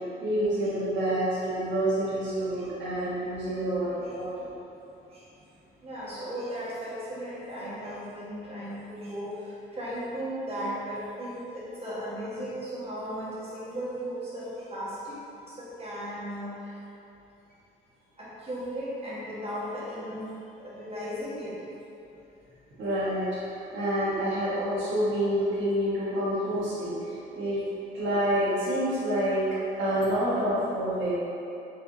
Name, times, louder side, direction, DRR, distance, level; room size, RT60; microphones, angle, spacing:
voice 1, 0.0-4.5 22.8-27.6 27.9-31.1, right 1 dB, 70° right, -11 dB, 1.4 m, -28 dB
voice 2, 5.8-15.2 15.5-16.8 18.2-20.4 20.6-21.6 30.0-30.1, equal, 30° right, -9 dB, 1.4 m, -36 dB
4.4 x 3.4 x 2.7 m, 2.9 s
cardioid pair, 90°, 20 cm